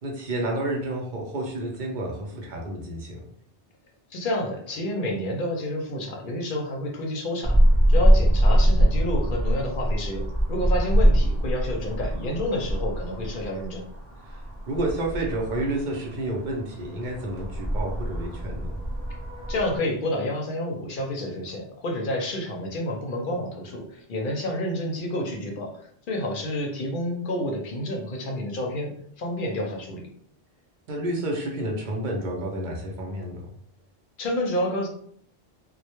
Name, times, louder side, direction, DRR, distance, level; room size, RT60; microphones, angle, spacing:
voice 1, 0.0-3.2 14.3-18.7 30.9-33.4, right 1 dB, 60° right, -1 dB, 0.6 m, -30 dB
voice 2, 4.1-7.6 7.9-13.8 19.5-30.0 34.2-34.9, left 1 dB, 60° left, 1 dB, 0.7 m, -29 dB
sound 1, 7.4-19.8, equal, 15° right, 0.7 m, -23 dB
2.1 x 2.1 x 2.9 m, 0.64 s
omnidirectional pair, 1.1 m